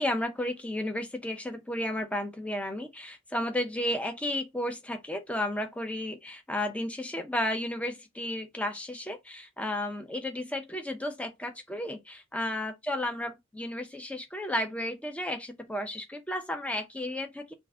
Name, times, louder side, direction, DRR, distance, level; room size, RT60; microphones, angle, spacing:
voice 1, 0.0-17.5, left 1 dB, 5° left, 0.7 m, -33 dB
3.7 x 2.5 x 3.7 m
head